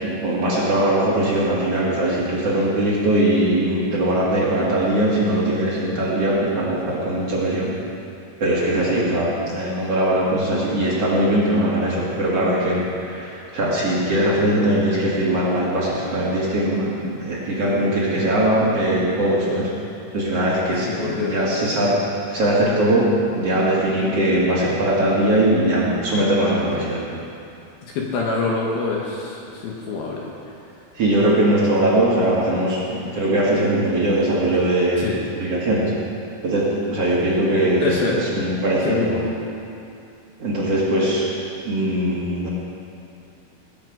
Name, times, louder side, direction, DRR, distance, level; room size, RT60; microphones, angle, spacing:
voice 1, 0.0-7.7 8.4-19.7 20.1-21.9 22.3-23.1 23.3-27.0 31.0-35.1 35.4-35.9 36.4-39.1 40.4-41.3 41.6-42.5, right 1 dB, 45° right, -6 dB, 2.2 m, -20 dB
voice 2, 20.8-21.4 27.9-30.2 35.0-35.2 37.8-38.2 38.8-39.4, left 4 dB, 70° left, -2 dB, 2.6 m, -25 dB
19.5 x 9.7 x 5.2 m, 2.6 s
omnidirectional pair, 5.5 m